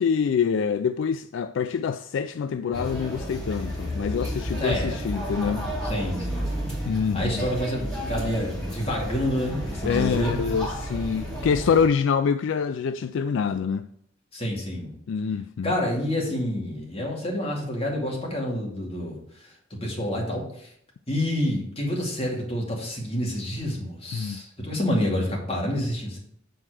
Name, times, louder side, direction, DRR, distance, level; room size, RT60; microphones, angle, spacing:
voice 1, 0.0-5.7 6.9-7.5 9.8-13.9 15.1-15.8 24.1-24.4, left 6 dB, 65° left, 0.3 m, -25 dB
sound 1, 2.7-11.9, equal, 5° left, 3.0 m, -32 dB
voice 2, 4.6-5.0 5.8-6.6 7.1-10.4 14.3-14.9 15.6-19.2 19.8-20.7 21.1-26.2, left 1 dB, 30° left, 2.4 m, -28 dB
7.8 x 4.5 x 6.2 m
head